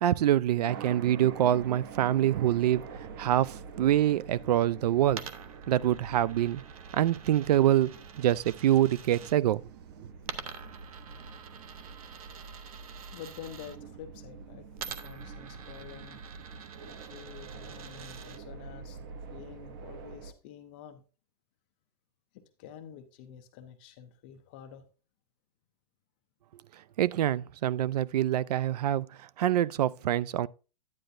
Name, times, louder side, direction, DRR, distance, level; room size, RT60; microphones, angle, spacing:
voice 1, 0.0-5.2 5.7-6.6 6.9-9.6 27.0-30.5, right 12 dB, 85° right, 0.4 m, -25 dB
sound 1, 0.7-20.3, right 5 dB, 35° right, 0.6 m, -46 dB
Coin (dropping), 5.1-9.3 10.2-13.8 14.7-18.4, right 7 dB, 65° right, 0.8 m, -46 dB
voice 2, 13.1-16.2 16.8-21.0 22.6-24.8, left 9 dB, 15° left, 0.3 m, -48 dB
9.7 x 8.9 x 2.5 m
supercardioid pair, 180°, 20 cm